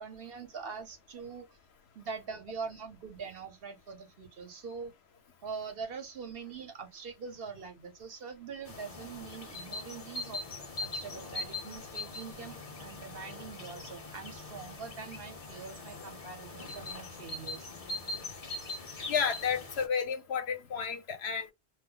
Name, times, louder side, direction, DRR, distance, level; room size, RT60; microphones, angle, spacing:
voice 1, 0.0-1.5 1.9-4.9 5.4-10.4 10.8-17.7, right 5 dB, 60° right, 0.9 m, -43 dB
sound 1, 8.7-19.9, left 2 dB, 40° left, 0.6 m, -42 dB
voice 2, 19.1-21.5, left 6 dB, 70° left, 0.9 m, -31 dB
2.3 x 2.0 x 3.5 m
omnidirectional pair, 1.2 m